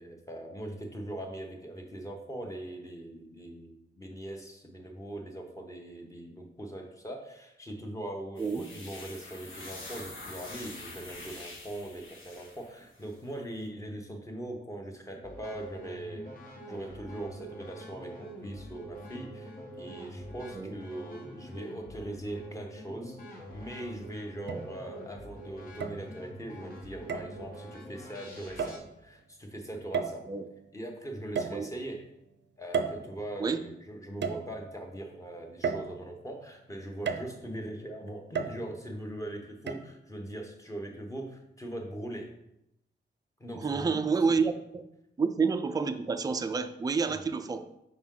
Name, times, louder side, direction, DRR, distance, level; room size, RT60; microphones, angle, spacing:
voice 1, 0.0-16.3 16.7-23.2 23.5-30.3 30.7-32.1 32.6-42.3 43.4-44.3 47.2-47.3, right 1 dB, 15° left, 1 dB, 1.0 m, -41 dB
sound 1, 8.4-13.1, left 2 dB, 85° left, 1.7 m, -46 dB
sound 2, 15.2-28.8, equal, 50° left, 1.2 m, -45 dB
sound 3, 23.4-23.5 24.5-25.1 25.8-26.4 27.1-27.4 28.6-28.9 29.9-30.5 31.4-32.0 32.7-33.6 34.2-34.9 35.6-36.4 37.1-37.6 38.4-39.0 39.7-39.8, right 6 dB, 70° right, 0.5 m, -34 dB
voice 2, 43.6-44.8 45.2-47.7, right 5 dB, 20° right, 8 dB, 0.3 m, -29 dB
6.0 x 4.5 x 3.8 m, 0.84 s
wide cardioid pair, 130°, 19 cm